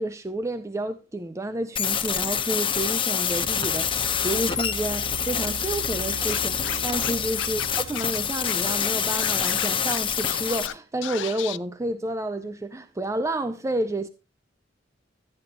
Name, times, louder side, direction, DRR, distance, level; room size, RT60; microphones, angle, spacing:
voice 1, 0.0-14.1, right 1 dB, 15° right, 0.4 m, -30 dB
sound 1, 1.8-10.7, left 8 dB, 30° left, 0.8 m, -26 dB
sound 2, 3.3-9.7, right 5 dB, 85° right, 0.5 m, -40 dB
Scratching (performance technique), 6.3-7.1 7.4-8.2 8.4-8.5 8.8-10.7 11.0-11.6, left 12 dB, 75° left, 0.4 m, -33 dB
12.5 x 9.1 x 2.9 m
head